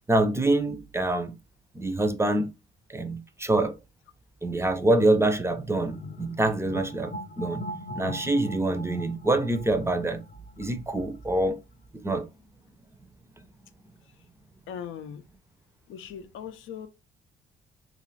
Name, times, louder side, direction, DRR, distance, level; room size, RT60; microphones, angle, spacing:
voice 1, 0.1-1.4 1.7-2.5 2.9-3.8 4.4-7.6 8.0-10.2 10.6-11.6 11.9-12.3, right 2 dB, 15° right, 0.4 m, -25 dB
sound 1, 5.9-11.1, left 1 dB, 40° left, 0.6 m, -40 dB
voice 2, 14.7-15.2 15.9-16.9, left 8 dB, 85° left, 0.5 m, -39 dB
2.4 x 2.4 x 3.1 m
cardioid pair, 90°, 20 cm